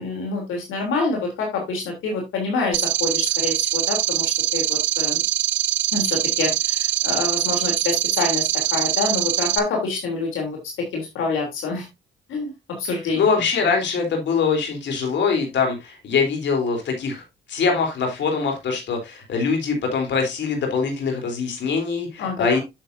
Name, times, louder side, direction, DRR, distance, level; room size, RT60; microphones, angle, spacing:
voice 1, 0.0-5.2 5.9-10.6 10.9-11.9 12.3-12.5 12.8-13.3 22.2-22.6, left 3 dB, 80° left, 1 dB, 3.3 m, -26 dB
sound 1, 2.7-9.6, right 12 dB, 70° right, 1.0 m, -23 dB
voice 2, 13.1-17.2 17.5-22.6, left 5 dB, 65° left, 3 dB, 3.7 m, -23 dB
9.4 x 7.0 x 2.7 m, 0.22 s
cardioid pair, 90°, 20 cm